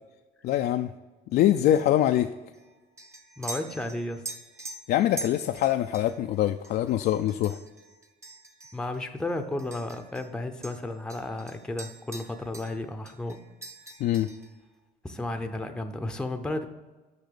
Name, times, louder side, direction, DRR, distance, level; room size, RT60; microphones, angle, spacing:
voice 1, 0.4-0.9 1.3-2.3 4.9-7.6 14.0-14.3, left 12 dB, 65° left, 7 dB, 0.4 m, -24 dB
sound 1, 1.7-10.3 10.6-12.8 13.0-14.6, right 2 dB, 15° right, 1.0 m, -44 dB
voice 2, 3.4-4.2 8.7-13.4 15.0-16.7, left 2 dB, 5° left, 7 dB, 0.6 m, -33 dB
6.6 x 5.5 x 6.8 m, 1.2 s
cardioid pair, 110°, 17 cm